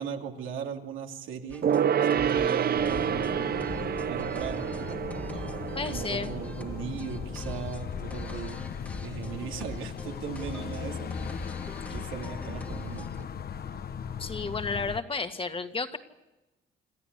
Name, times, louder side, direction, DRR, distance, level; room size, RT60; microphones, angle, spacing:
voice 1, 0.0-1.7 2.0-3.6 4.1-5.0 5.9-8.6 9.0-11.1 11.9-13.3, right 7 dB, 90° right, 3 dB, 2.6 m, -38 dB
sound 1, 1.5-13.2, left 1 dB, 5° left, 1.8 m, -45 dB
Gong, 1.6-7.5 7.8-7.9, right 8 dB, 50° right, 0.7 m, -29 dB
sound 2, 2.7-15.0, left 7 dB, 50° left, 1.2 m, -38 dB
voice 2, 5.7-6.3 14.2-16.0, left 4 dB, 25° left, 8 dB, 1.9 m, -32 dB
27.5 x 13.5 x 8.3 m, 1.0 s
cardioid pair, 90°, 20 cm